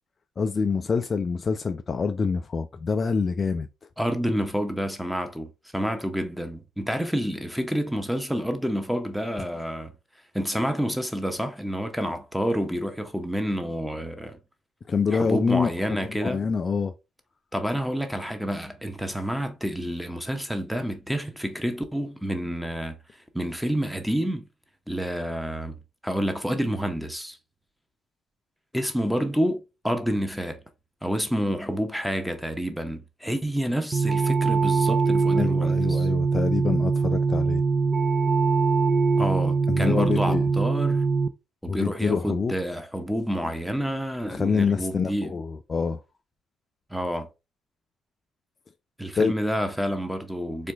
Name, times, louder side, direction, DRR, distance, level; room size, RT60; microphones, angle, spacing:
voice 1, 0.4-3.7 14.9-15.7 16.2-16.9 35.3-37.6 39.7-40.5 41.7-42.5 44.3-46.0 49.2-49.3, left 5 dB, 35° left, 0.3 m, -26 dB
voice 2, 4.0-9.9 10.3-14.4 15.1-16.4 17.5-23.0 23.3-24.5 24.9-27.4 28.7-30.6 31.0-36.1 39.2-41.1 41.6-45.4 46.9-47.3 49.0-50.7, equal, ahead, 0.8 m, -28 dB
sound 1, 33.9-41.3, right 4 dB, 30° right, 0.4 m, -22 dB
4.3 x 2.5 x 3.4 m
figure-of-eight pair, 45°, 0 cm